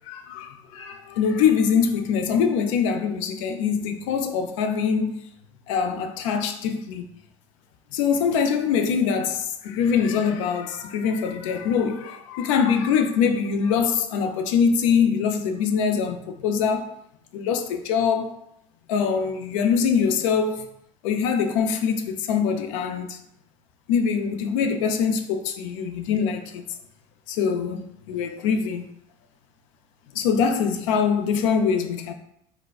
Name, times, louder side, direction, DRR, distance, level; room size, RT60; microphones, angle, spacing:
voice 1, 0.1-5.2 5.7-7.1 7.9-16.9 17.3-18.4 18.9-20.7 21.0-23.2 23.9-26.6 27.3-28.8 30.1-32.1, left 6 dB, 80° left, 0.4 m, -23 dB
3.9 x 2.2 x 2.3 m
hypercardioid pair, 65°, 17 cm